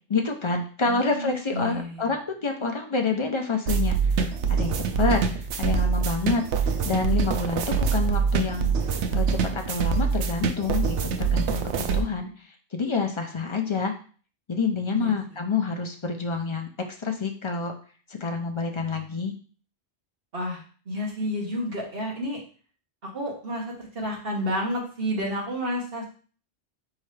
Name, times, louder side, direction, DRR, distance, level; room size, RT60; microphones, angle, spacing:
voice 1, 0.1-12.3 12.7-13.9 14.5-16.7 17.0-17.7 18.1-19.3, left 4 dB, 35° left, 4 dB, 0.5 m, -28 dB
voice 2, 0.8-2.1 12.2-12.4 14.9-15.4 20.3-22.4 23.0-26.0, equal, 60° right, -2 dB, 1.5 m, -31 dB
sound 1, 3.7-12.0, right 6 dB, 90° right, 0.9 m, -25 dB
4.3 x 3.7 x 3.2 m, 0.40 s
omnidirectional pair, 1.1 m